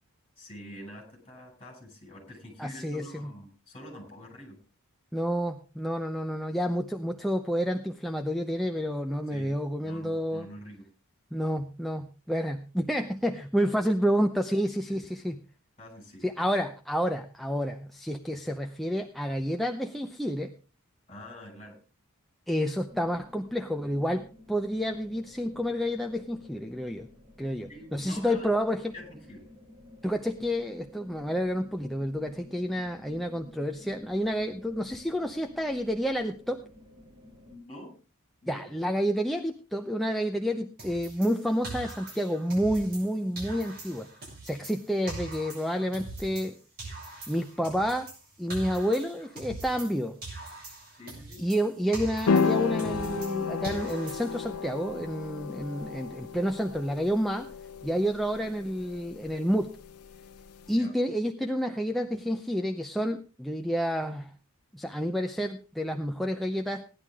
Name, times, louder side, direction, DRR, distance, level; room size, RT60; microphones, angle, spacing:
voice 1, 0.4-4.6 9.3-9.6 9.8-10.9 14.9-15.0 15.8-16.3 21.1-21.8 27.7-28.5 28.9-29.4 37.5-38.0 38.4-38.7 51.0-51.5 60.7-60.9, left 1 dB, 25° left, 3 dB, 5.5 m, -46 dB
voice 2, 2.6-3.3 5.1-10.5 11.3-15.4 16.2-20.5 22.5-27.1 27.4-28.9 30.0-36.6 38.5-44.1 44.4-46.6 47.3-48.1 48.4-50.2 51.4-57.5 57.8-59.7 60.7-64.3 64.7-66.8, equal, ahead, 4 dB, 0.6 m, -29 dB
sound 1, 22.9-37.6, left 1 dB, 20° right, 2.7 m, -53 dB
sound 2, 40.8-43.1 43.4-46.5 46.8-50.0 50.2-53.4 53.6-54.5, right 2 dB, 40° right, 7.4 m, -42 dB
sound 3, 52.3-60.7, left 5 dB, 90° left, 0.7 m, -32 dB
17.0 x 11.0 x 3.6 m, 0.33 s
head